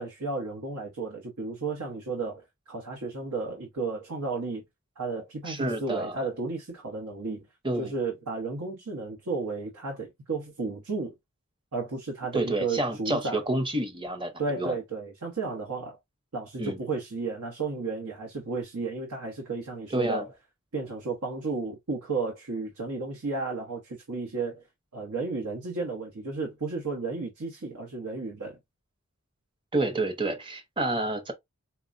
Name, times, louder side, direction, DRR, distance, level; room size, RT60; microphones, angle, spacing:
voice 1, 0.0-4.6 5.0-7.4 7.8-11.1 11.7-13.4 14.4-16.0 16.3-20.3 20.7-24.6 24.9-28.6, right 3 dB, 90° right, 0.9 m, -33 dB
voice 2, 5.5-6.3 7.6-7.9 12.3-14.3 14.6-14.7 16.6-16.8 19.9-20.3 29.7-31.3, right 2 dB, 20° right, 0.7 m, -29 dB
4.4 x 2.1 x 2.5 m
head